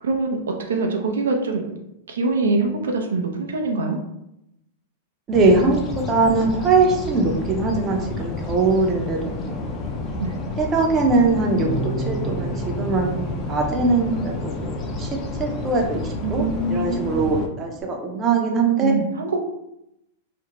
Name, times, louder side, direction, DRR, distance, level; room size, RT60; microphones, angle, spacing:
voice 1, 0.0-1.7 2.1-4.0 10.2-10.3 16.2-17.3 18.8-19.4, right 3 dB, 90° right, 3 dB, 0.4 m, -24 dB
sound 1, 5.3-17.5, left 3 dB, 30° left, 0.4 m, -30 dB
voice 2, 5.3-9.7 10.6-18.9, right 3 dB, 30° right, 2 dB, 0.5 m, -21 dB
Bass guitar, 11.6-17.8, right 2 dB, 55° left, 1.1 m, -34 dB
2.5 x 2.0 x 2.9 m, 0.84 s
hypercardioid pair, 125°, 0 cm